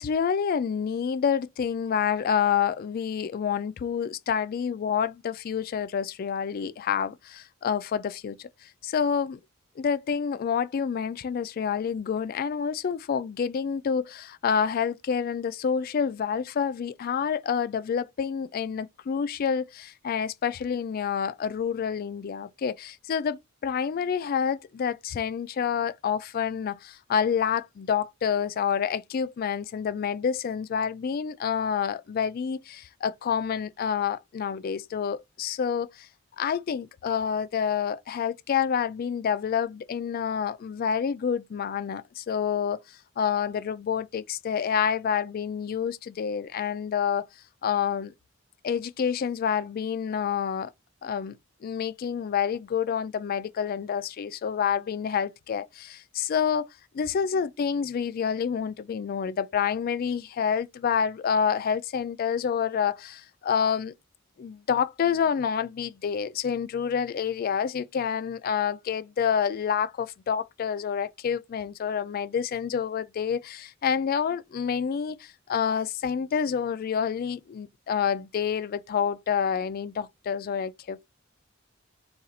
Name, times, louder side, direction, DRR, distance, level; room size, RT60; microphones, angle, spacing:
voice 1, 0.0-9.4 9.8-36.1 36.4-42.8 43.2-47.3 47.6-48.1 48.6-50.7 51.0-51.4 51.6-56.7 56.9-63.9 64.4-81.0, left 7 dB, 50° left, 0.3 m, -28 dB
4.1 x 2.4 x 3.9 m
head